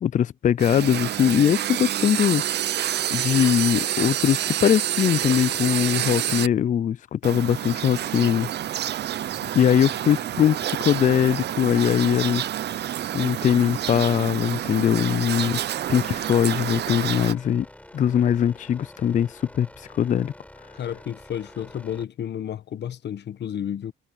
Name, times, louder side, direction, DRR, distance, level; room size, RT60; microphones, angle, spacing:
voice 1, 0.0-2.4 3.1-8.5 9.5-12.4 13.1-15.6 15.9-17.7 17.9-19.7 19.9-20.3, left 9 dB, 40° left, 0.4 m, -21 dB
sound 1, 0.6-6.5 7.2-17.3, right 11 dB, 60° right, 0.6 m, -28 dB
sound 2, 15.5-22.0, left 1 dB, 5° left, 4.5 m, -47 dB
voice 2, 20.7-23.9, left 9 dB, 60° left, 1.2 m, -31 dB
cardioid pair, 90°, 20 cm